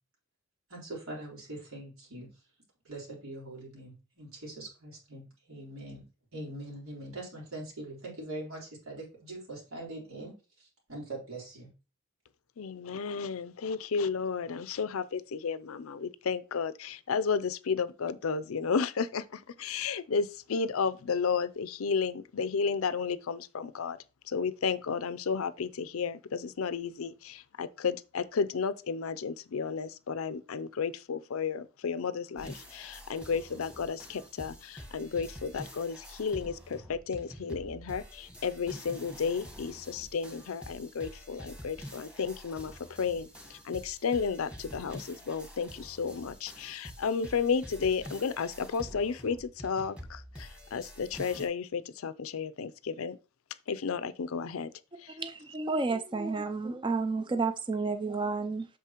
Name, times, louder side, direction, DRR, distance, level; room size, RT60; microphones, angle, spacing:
voice 1, 0.7-2.3 2.8-6.0 6.3-11.7, right 2 dB, 90° right, 3.8 m, -42 dB
voice 2, 12.6-24.0 24.3-53.2 53.7-54.7 55.0-55.2, left 5 dB, 85° left, 0.5 m, -33 dB
sound 1, 32.4-51.5, equal, 5° right, 1.3 m, -47 dB
voice 3, 55.2-58.7, right 3 dB, 25° right, 0.4 m, -31 dB
8.2 x 6.3 x 3.0 m
head